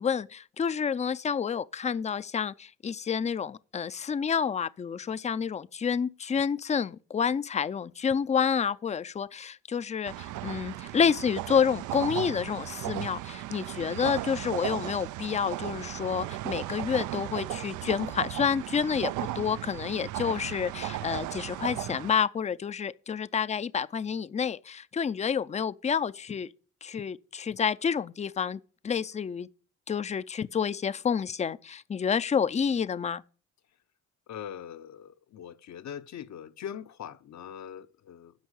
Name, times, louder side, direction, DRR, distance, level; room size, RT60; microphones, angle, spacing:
voice 1, 0.0-26.5 26.8-29.5 29.9-33.2, left 7 dB, 25° left, 0.4 m, -29 dB
sound 1, 10.1-22.1, right 15 dB, 80° right, 0.5 m, -36 dB
voice 2, 34.3-38.3, left 9 dB, 65° left, 0.9 m, -42 dB
10.5 x 6.2 x 8.1 m
cardioid pair, 90°, 30 cm